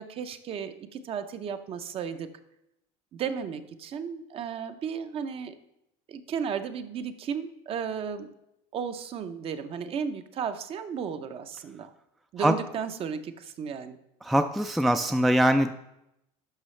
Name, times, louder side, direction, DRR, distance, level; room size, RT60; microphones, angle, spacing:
voice 1, 0.0-2.3 3.1-5.6 6.1-8.3 8.7-11.9 12.3-14.0, right 7 dB, 40° right, 10 dB, 0.6 m, -34 dB
voice 2, 14.2-15.7, right 1 dB, ahead, 8 dB, 0.3 m, -22 dB
11.5 x 5.5 x 3.2 m, 0.85 s
supercardioid pair, 115°, 15 cm